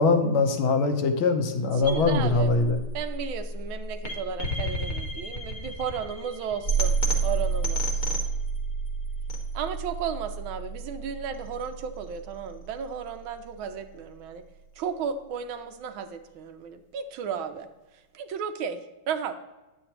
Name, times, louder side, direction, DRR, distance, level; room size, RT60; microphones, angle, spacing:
voice 1, 0.0-2.8, left 3 dB, 75° left, 5 dB, 1.6 m, -22 dB
sound 1, 1.8-13.9, right 3 dB, 40° left, 0.6 m, -30 dB
voice 2, 1.8-2.5 2.9-6.9 7.2-8.0 9.5-14.4 14.8-17.7 18.1-19.4, right 7 dB, 75° right, 8 dB, 1.4 m, -34 dB
9.3 x 8.0 x 2.9 m, 1.1 s
omnidirectional pair, 2.4 m